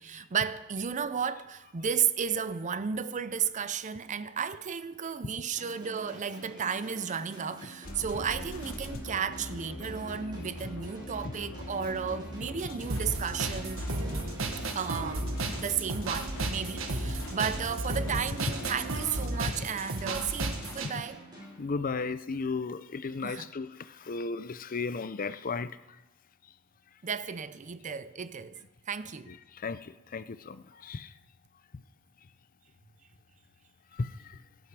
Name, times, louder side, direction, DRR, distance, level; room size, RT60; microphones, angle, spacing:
voice 1, 0.0-13.9 14.7-21.2 23.2-23.5 27.0-28.6 28.9-29.3, right 7 dB, 35° right, 0.5 m, -33 dB
sound 1, 5.6-22.2, right 1 dB, 20° right, 5.8 m, -48 dB
sound 2, 7.8-20.9, left 1 dB, 90° left, 2.6 m, -42 dB
sound 3, 12.9-20.9, right 2 dB, 85° right, 1.5 m, -34 dB
voice 2, 21.6-25.8 29.3-31.1 33.9-34.4, left 4 dB, 45° left, 0.6 m, -35 dB
17.5 x 12.0 x 4.8 m
head